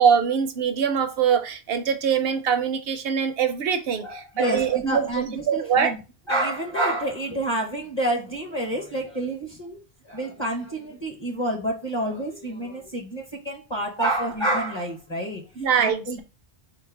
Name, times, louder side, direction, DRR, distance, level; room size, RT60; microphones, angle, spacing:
voice 1, 0.0-5.9 15.6-16.2, right 7 dB, 70° right, 0.8 m, -23 dB
voice 2, 4.0-6.0 6.3-15.5 15.8-16.2, right 1 dB, 30° left, 0.8 m, -28 dB
3.9 x 2.1 x 4.4 m
omnidirectional pair, 1.1 m